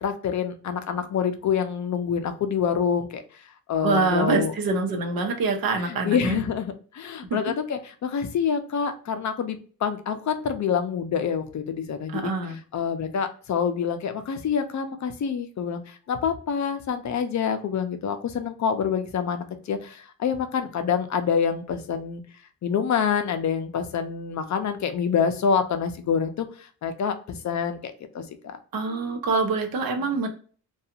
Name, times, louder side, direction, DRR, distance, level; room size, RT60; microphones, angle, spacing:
voice 1, 0.0-3.2 3.7-4.5 5.9-12.3 12.7-22.2 22.6-28.6, left 7 dB, 55° left, 8 dB, 0.5 m, -27 dB
voice 2, 3.8-6.4 7.3-7.4 12.1-12.6 28.7-30.3, right 4 dB, 80° right, 3 dB, 0.8 m, -25 dB
2.4 x 2.3 x 2.7 m, 0.41 s
wide cardioid pair, 155°, 35 cm